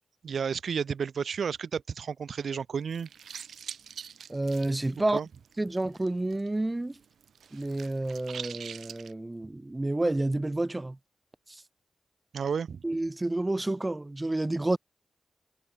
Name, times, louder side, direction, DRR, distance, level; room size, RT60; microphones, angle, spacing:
voice 1, 0.2-3.1 5.1-5.3 12.3-12.8, right 6 dB, 70° right, 1.7 m, -32 dB
sound 1, 2.8-6.5 6.8-9.1, right 8 dB, 85° right, 1.4 m, -44 dB
voice 2, 4.3-5.2 5.6-7.0 7.5-11.0 11.5-11.6 12.8-14.8, right 2 dB, 15° right, 0.5 m, -29 dB
wide cardioid pair, 100°, 0 cm